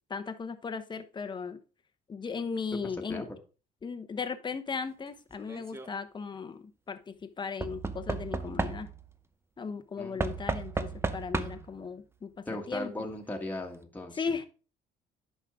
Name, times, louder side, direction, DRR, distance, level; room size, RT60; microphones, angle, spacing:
voice 1, 0.1-1.6 2.1-3.3 3.8-8.9 9.6-12.3 12.7-13.0 14.2-14.4, left 5 dB, 25° left, 10 dB, 1.0 m, -37 dB
voice 2, 2.8-3.3 10.0-10.4 12.5-14.2, left 1 dB, 10° left, 1 dB, 1.7 m, -38 dB
Knock / Wood, 5.4-5.9 7.6-9.1 10.2-11.8 12.8-12.9 13.1-13.2, right 3 dB, 15° right, 0.7 m, -34 dB
10.0 x 5.5 x 3.6 m, 0.35 s
cardioid pair, 110°, 17 cm